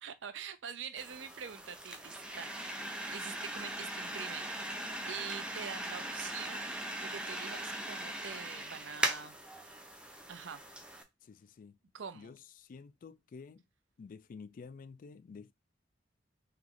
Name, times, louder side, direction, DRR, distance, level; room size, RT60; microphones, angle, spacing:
voice 1, 0.0-4.8 5.1-6.6 7.0-9.4 10.3-10.6 11.9-12.4, right 7 dB, 75° right, 0.5 m, -45 dB
sound 1, 1.0-11.0, right 1 dB, 5° right, 0.5 m, -40 dB
voice 2, 11.2-11.7 12.1-13.6 14.0-15.5, left 5 dB, 45° left, 0.3 m, -50 dB
3.3 x 3.0 x 3.8 m
head